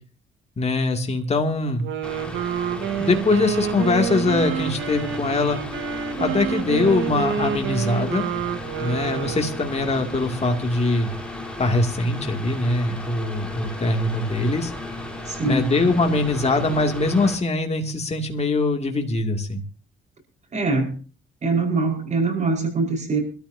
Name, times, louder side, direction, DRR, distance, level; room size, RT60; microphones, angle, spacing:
voice 1, 0.6-1.9 3.0-5.6 6.2-8.3 8.8-11.1 11.6-14.7 15.5-19.6, left 3 dB, 30° left, 3 dB, 2.6 m, -22 dB
Wind instrument woodwind instrument, 1.7-9.7, right 7 dB, 70° right, 2.0 m, -28 dB
Mechanical fan, 2.0-17.3, left 1 dB, 5° left, 4.1 m, -35 dB
voice 2, 15.3-15.6 20.5-21.0 21.4-23.2, right 3 dB, 35° right, 2 dB, 5.2 m, -23 dB
25.0 x 13.5 x 2.8 m, 0.37 s
cardioid pair, 90°, 20 cm